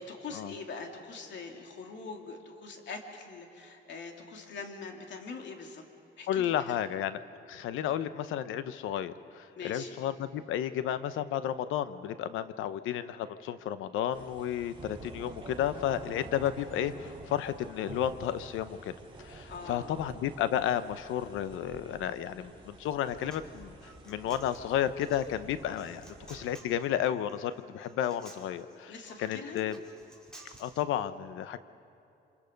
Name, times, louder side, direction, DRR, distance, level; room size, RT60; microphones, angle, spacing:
voice 1, 0.0-5.8 6.2-6.8 9.6-9.9 19.5-19.9 28.9-29.6, left 4 dB, 65° left, 2 dB, 2.8 m, -43 dB
voice 2, 6.3-7.2 7.5-18.9 19.2-23.7 24.1-28.9 29.2-29.8 30.6-31.6, left 10 dB, 90° left, 13 dB, 0.9 m, -32 dB
sound 1, 14.1-26.6, right 3 dB, 25° right, 3.8 m, -48 dB
Human voice, 22.8-30.8, right 1 dB, 5° left, 4.2 m, -55 dB
27.0 x 26.5 x 5.3 m, 2.7 s
cardioid pair, 90°, 20 cm